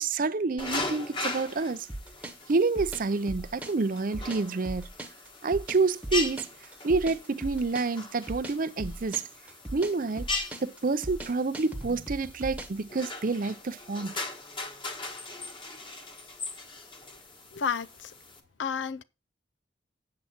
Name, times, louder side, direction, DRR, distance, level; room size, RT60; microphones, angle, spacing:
voice 1, 0.0-1.9 2.5-4.9 5.4-6.5 6.8-9.2 9.7-10.3 10.6-14.1, right 3 dB, 45° right, 0.6 m, -28 dB
sound 1, 0.6-18.4, left 3 dB, 25° left, 1.5 m, -39 dB
sound 2, 1.9-12.8, right 1 dB, 5° right, 1.2 m, -39 dB
voice 2, 17.5-18.1 18.6-19.0, left 6 dB, 75° left, 0.5 m, -31 dB
8.5 x 7.7 x 4.4 m
head